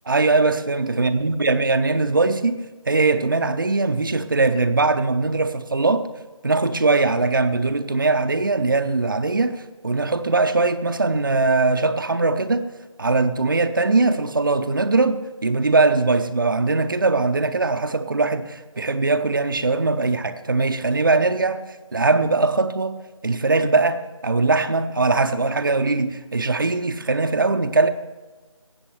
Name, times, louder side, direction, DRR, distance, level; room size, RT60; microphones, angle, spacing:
voice 1, 0.1-6.1 6.4-12.7 13.0-21.6 21.9-23.0 23.2-27.9, right 3 dB, 40° right, 9 dB, 0.5 m, -21 dB
19.0 x 7.9 x 3.2 m, 1.3 s
figure-of-eight pair, 170°, 17 cm